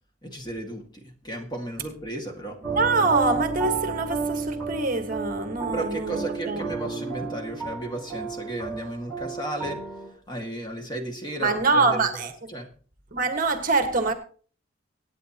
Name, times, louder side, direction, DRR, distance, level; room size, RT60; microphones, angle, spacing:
voice 1, 0.2-2.8 5.7-9.8 10.3-12.1 12.5-12.7, right 1 dB, 20° left, 2.0 m, -34 dB
sound 1, 2.6-10.1, right 5 dB, ahead, 6.0 m, -32 dB
voice 2, 2.7-6.7 11.4-12.5 13.1-14.1, right 3 dB, 45° right, 1.5 m, -24 dB
24.0 x 9.1 x 2.9 m
head